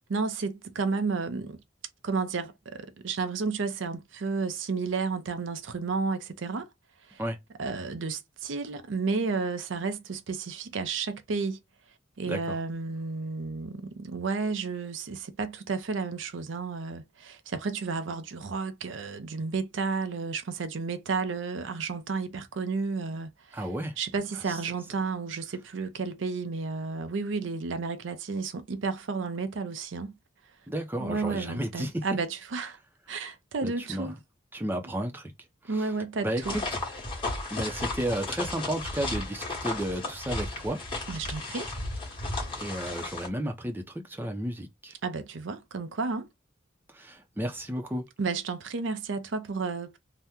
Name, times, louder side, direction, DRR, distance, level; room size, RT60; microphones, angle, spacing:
voice 1, 0.0-1.6 2.0-6.7 7.1-7.2 7.6-11.6 12.2-23.6 24.0-30.1 31.0-32.8 33.1-34.2 35.7-36.5 41.1-41.7 45.0-46.3 48.2-50.0, right 4 dB, 70° right, 0.5 m, -32 dB
voice 2, 12.3-12.6 23.5-24.0 24.5-24.6 30.7-32.2 33.6-34.1 34.5-35.3 35.6-35.9 36.2-36.6 37.5-40.8 42.2-44.9 46.9-48.0, right 1 dB, 10° right, 0.6 m, -33 dB
sound 1, 36.4-43.3, left 2 dB, 25° left, 1.2 m, -34 dB
2.8 x 2.1 x 3.5 m
head